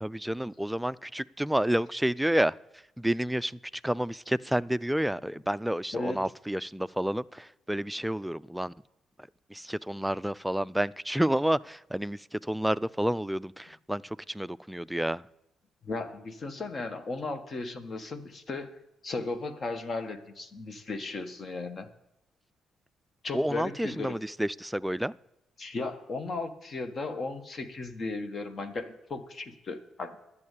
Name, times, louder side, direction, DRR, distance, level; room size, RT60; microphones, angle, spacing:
voice 1, 0.0-2.5 3.0-8.7 9.5-15.2 23.3-25.1, right 1 dB, 5° right, 18 dB, 0.4 m, -30 dB
voice 2, 5.9-6.2 15.8-18.8 19.0-21.9 23.2-24.2 25.6-30.2, left 3 dB, 45° left, 9 dB, 1.4 m, -36 dB
10.5 x 7.2 x 8.4 m, 0.88 s
figure-of-eight pair, 40°, 0 cm